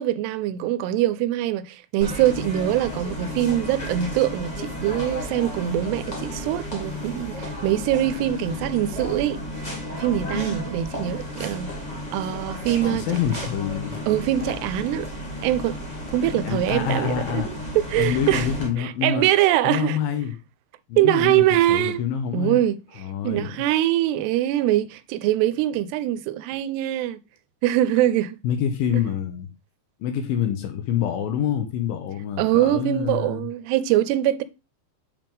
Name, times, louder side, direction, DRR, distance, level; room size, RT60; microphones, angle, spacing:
voice 1, 0.0-9.4 9.9-11.7 12.1-13.1 14.1-15.1 15.4-15.8 16.1-18.5 18.8-20.0 21.0-22.0 22.3-27.2 27.6-28.4 32.4-34.4, right 13 dB, 85° right, 2.7 m, -23 dB
sound 1, 2.0-18.7, equal, 45° left, 0.5 m, -33 dB
voice 2, 12.8-14.0 16.3-17.5 18.0-19.3 19.6-20.4 20.9-22.6 23.0-23.6 28.4-29.5 30.0-33.5, left 8 dB, 75° left, 2.4 m, -26 dB
6.9 x 5.8 x 3.5 m
omnidirectional pair, 4.7 m